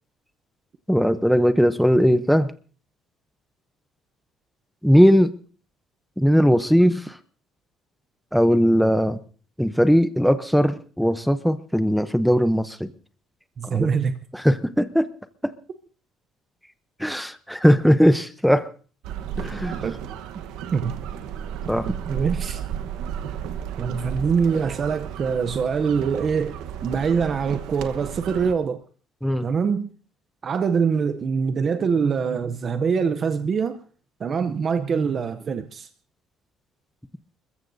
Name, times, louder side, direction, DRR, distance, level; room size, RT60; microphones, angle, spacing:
voice 1, 0.9-2.5 4.8-5.3 6.2-7.2 8.3-9.2 9.6-12.9 13.6-13.9 14.3-15.1 17.0-18.7 19.4-19.8 21.7-21.9 29.2-29.5, equal, ahead, 11 dB, 0.7 m, -19 dB
voice 2, 13.6-14.2 19.8-20.1 20.7-21.0 21.9-22.6 23.8-28.8 29.4-29.9 30.4-33.8 34.2-35.9, right 6 dB, 35° right, 10 dB, 0.7 m, -24 dB
sound 1, 19.0-28.5, right 9 dB, 90° right, 1.1 m, -33 dB
30.0 x 14.5 x 2.7 m, 0.40 s
cardioid pair, 150°, 0 cm